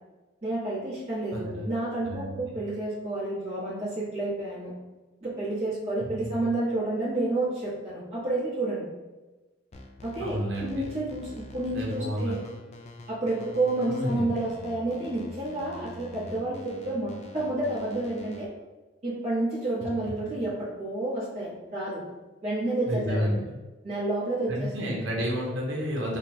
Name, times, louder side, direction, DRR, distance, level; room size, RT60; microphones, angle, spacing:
voice 1, 0.4-4.7 5.2-8.8 10.0-10.4 10.6-12.5 13.1-18.5 19.0-22.0 22.4-23.3 23.8-24.7, right 2 dB, 35° right, -12 dB, 1.3 m, -30 dB
voice 2, 1.3-1.7 2.0-2.4 6.2-6.3 10.2-10.8 11.7-12.3 13.9-14.2 22.9-23.4 24.5-26.2, equal, 75° right, -2 dB, 1.0 m, -30 dB
sound 1, 9.7-18.4, left 1 dB, 35° left, 0.4 m, -45 dB
3.3 x 2.3 x 4.2 m, 1.2 s
head